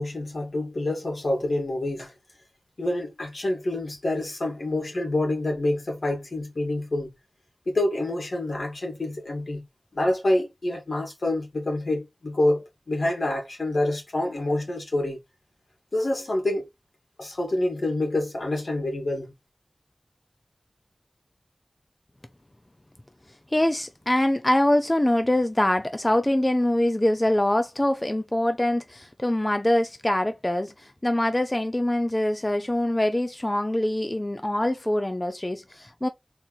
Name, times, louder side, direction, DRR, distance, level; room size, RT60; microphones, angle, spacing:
voice 1, 0.0-2.1 2.8-7.1 7.7-9.7 9.9-15.2 15.9-16.7 17.2-19.3, left 1 dB, 80° left, 2.3 m, -27 dB
voice 2, 23.5-36.1, left 1 dB, 25° left, 0.6 m, -24 dB
4.1 x 2.9 x 4.1 m
wide cardioid pair, 50°, 0 cm